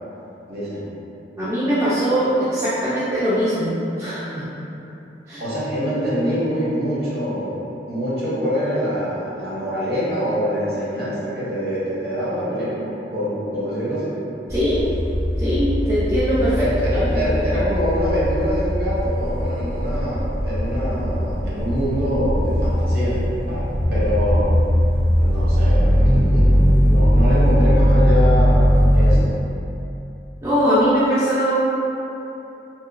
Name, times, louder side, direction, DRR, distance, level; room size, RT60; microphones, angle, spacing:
voice 1, 0.5-0.8 5.4-14.1 16.5-23.2 23.5-23.6 23.9-24.6 25.1-28.7 28.9-29.3, equal, 55° right, -9 dB, 0.8 m, -25 dB
voice 2, 1.4-4.4 5.3-5.4 14.5-14.9 15.4-16.7 17.2-17.4 30.4-31.5, equal, 15° right, -12 dB, 0.4 m, -21 dB
Ferry over the river Elbe, 14.5-29.2, equal, 85° right, 1.0 m, -19 dB
2.8 x 2.2 x 2.3 m, 2.9 s
head